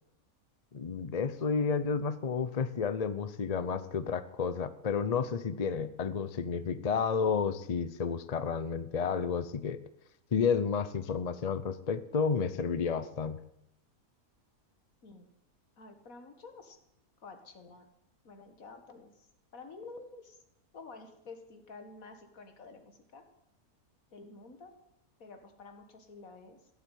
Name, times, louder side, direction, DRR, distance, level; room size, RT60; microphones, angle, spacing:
voice 1, 0.7-9.8 10.3-13.4, left 6 dB, 40° left, 12 dB, 0.6 m, -31 dB
voice 2, 15.8-16.8 17.2-17.9 18.2-20.4 20.7-23.2 24.1-24.7 25.2-26.7, left 3 dB, 65° left, 6 dB, 2.1 m, -50 dB
16.5 x 7.3 x 9.1 m, 0.79 s
omnidirectional pair, 1.6 m